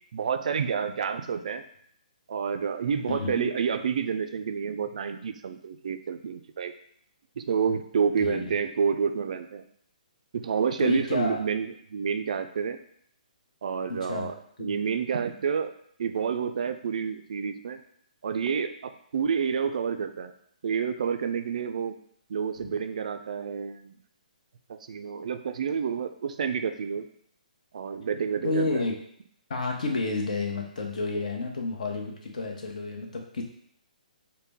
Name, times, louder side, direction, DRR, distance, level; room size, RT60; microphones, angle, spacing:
voice 1, 0.1-1.6 2.3-6.7 7.4-9.6 10.3-12.8 13.6-14.3 14.6-15.7 16.0-17.8 18.2-20.3 20.6-21.9 22.3-23.9 24.9-27.0 27.7-28.8, right 6 dB, 60° right, 8 dB, 0.3 m, -29 dB
voice 2, 3.1-3.5 8.2-8.5 10.8-11.4 13.9-14.3 14.6-14.7 22.6-22.7 28.4-29.0 29.5-33.4, left 3 dB, 60° left, 1 dB, 0.9 m, -30 dB
3.9 x 2.1 x 3.4 m, 0.66 s
figure-of-eight pair, 135°, 4 cm